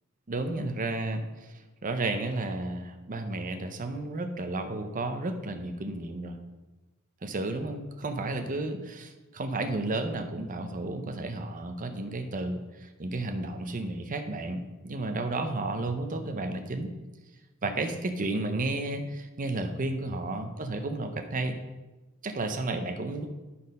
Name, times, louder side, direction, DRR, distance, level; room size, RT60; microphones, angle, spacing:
voice 1, 0.3-6.4 7.2-16.9 17.6-21.6 22.2-23.3, right 2 dB, 40° right, 7 dB, 0.6 m, -32 dB
11.0 x 4.2 x 5.3 m, 1.2 s
head